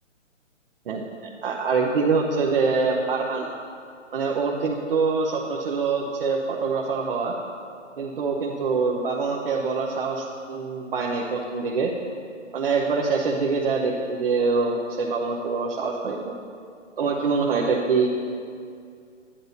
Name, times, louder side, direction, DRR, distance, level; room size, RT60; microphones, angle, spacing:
voice 1, 1.4-3.5 4.1-7.3 8.0-11.9 12.5-16.3 17.0-18.1, right 4 dB, 50° right, -2 dB, 1.0 m, -24 dB
11.5 x 10.0 x 2.8 m, 2.3 s
figure-of-eight pair, 145°, 37 cm